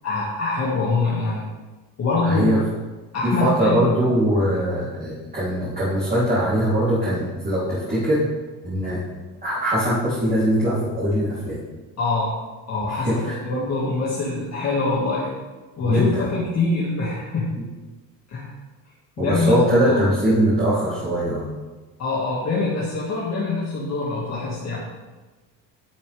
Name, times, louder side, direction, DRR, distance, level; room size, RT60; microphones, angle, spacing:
voice 1, 0.0-1.5 2.0-2.5 3.1-3.9 12.0-12.4 12.7-15.3 15.8-17.6 18.3-18.5 19.2-19.6 19.9-20.0 22.0-24.8, left 3 dB, 40° left, -6 dB, 2.0 m, -24 dB
voice 2, 2.2-2.6 3.2-8.2 8.6-9.0 9.4-11.6 13.0-13.4 15.8-16.2 19.2-21.5, equal, 25° right, -9 dB, 3.3 m, -21 dB
11.5 x 7.2 x 3.4 m, 1.2 s
cardioid pair, 110°, 39 cm